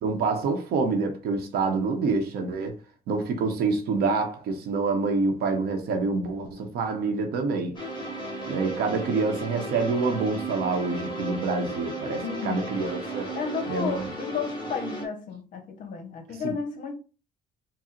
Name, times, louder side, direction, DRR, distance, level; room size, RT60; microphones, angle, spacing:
voice 1, 0.0-2.8 3.1-7.8 8.5-13.3 13.7-14.1 16.4-16.5, right 4 dB, 70° right, 0.8 m, -27 dB
sound 1, 7.7-15.0, right 2 dB, 25° left, 1.5 m, -35 dB
voice 2, 12.2-12.6 13.3-16.9, left 6 dB, 50° left, 0.9 m, -33 dB
3.7 x 2.0 x 4.3 m
cardioid pair, 110°, 17 cm